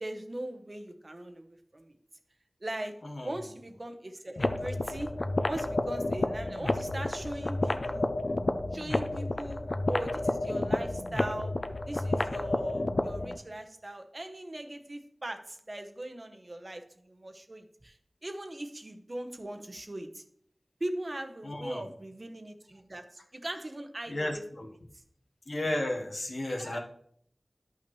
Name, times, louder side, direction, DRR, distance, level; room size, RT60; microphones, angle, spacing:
voice 1, 0.0-1.9 2.6-2.9 3.2-5.1 5.5-8.1 8.7-11.5 11.9-20.2 20.8-24.4 24.9-25.0 26.5-26.8, right 1 dB, 50° right, 6 dB, 0.9 m, -40 dB
voice 2, 3.0-3.3 21.4-21.8 24.1-24.7 25.5-26.8, left 1 dB, 85° left, 1 dB, 1.3 m, -33 dB
sound 1, 4.4-13.4, left 2 dB, 65° left, 0.5 m, -30 dB
11.0 x 5.7 x 3.1 m, 0.66 s
wide cardioid pair, 60°, 0 cm